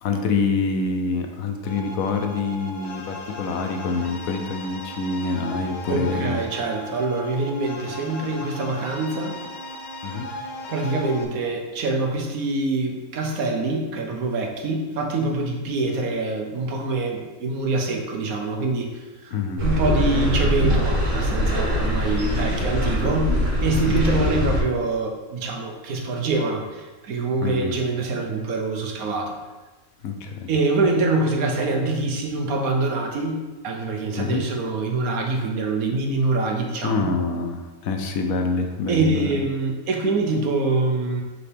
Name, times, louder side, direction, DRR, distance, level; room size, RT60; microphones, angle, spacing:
voice 1, 0.0-6.4 10.0-10.3 19.3-19.6 24.1-24.3 27.4-27.8 30.0-30.5 34.2-34.4 36.8-39.3, left 4 dB, 75° left, 4 dB, 1.1 m, -26 dB
sound 1, 1.6-11.2, left 2 dB, 55° left, 0.5 m, -37 dB
voice 2, 5.9-9.4 10.7-19.3 19.6-29.3 30.5-37.1 38.9-41.2, right 3 dB, 75° right, 2 dB, 1.3 m, -25 dB
sound 2, 19.6-24.6, equal, 60° right, 1.8 m, -22 dB
6.9 x 4.2 x 3.4 m, 1.2 s
omnidirectional pair, 1.5 m